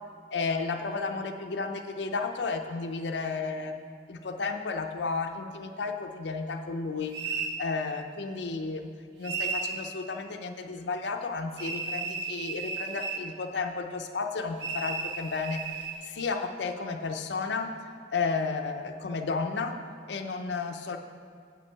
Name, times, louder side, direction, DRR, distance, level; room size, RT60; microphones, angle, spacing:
voice 1, 0.3-3.7 4.1-8.9 9.2-17.7 18.1-19.8 20.1-21.0, left 4 dB, 75° left, 5 dB, 0.5 m, -33 dB
sound 1, 7.1-7.6 9.2-9.8 11.6-13.3 14.6-16.0, right 4 dB, 75° right, 0.8 m, -34 dB
9.0 x 6.8 x 4.6 m, 2.2 s
head